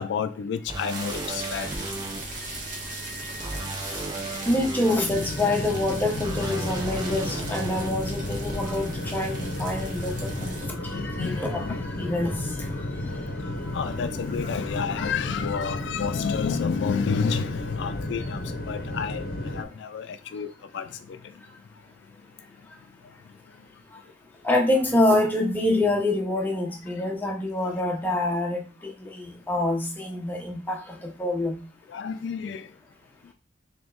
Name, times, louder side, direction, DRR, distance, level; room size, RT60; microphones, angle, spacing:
voice 1, 0.0-1.7 6.6-6.7 9.0-9.3 9.7-10.1 10.3-10.4 10.9-12.1 13.0-19.3 19.5-21.4 31.9-32.7, left 6 dB, 70° left, 0.3 m, -31 dB
sound 1, 0.7-2.2 3.4-5.0 6.2-7.9, right 2 dB, 20° right, 0.4 m, -35 dB
sound 2, 0.9-10.7, right 2 dB, 50° right, 1.1 m, -37 dB
voice 2, 2.7-4.0 4.3-12.9 24.4-31.6, left 1 dB, 10° left, 0.7 m, -27 dB
sound 3, 5.1-19.6, left 1 dB, 55° left, 0.7 m, -33 dB
3.4 x 2.9 x 3.8 m
head